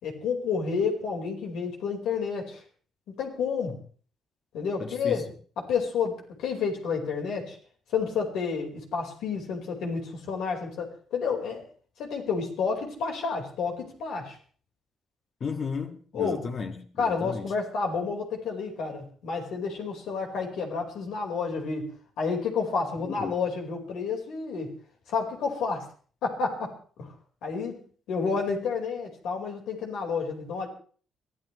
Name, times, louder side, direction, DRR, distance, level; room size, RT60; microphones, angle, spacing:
voice 1, 0.0-2.6 3.2-3.8 4.5-5.2 5.6-7.6 7.9-11.6 12.0-14.4 16.1-16.4 17.0-21.9 22.2-24.7 25.1-25.8 26.2-26.7 27.0-27.1 27.4-27.8 28.1-30.7, left 5 dB, 85° left, 4.8 m, -30 dB
voice 2, 4.8-5.2 15.4-17.5 23.1-23.3, left 5 dB, 50° left, 2.1 m, -34 dB
23.5 x 14.0 x 3.3 m
cardioid pair, 90°, 0 cm